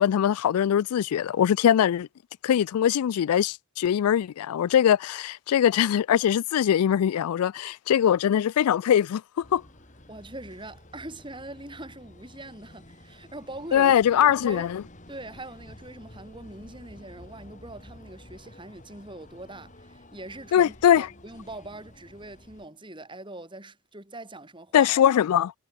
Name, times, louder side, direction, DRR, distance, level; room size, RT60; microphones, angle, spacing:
voice 1, 0.0-2.1 2.4-9.2 9.5-9.6 13.7-14.8 20.5-21.1 24.7-25.5, left 9 dB, 90° left, 0.3 m, -22 dB
sound 1, 9.4-22.7, left 1 dB, 35° left, 6.4 m, -50 dB
voice 2, 10.1-13.9 14.2-14.7 15.1-24.9, right 2 dB, 20° right, 5.0 m, -42 dB
head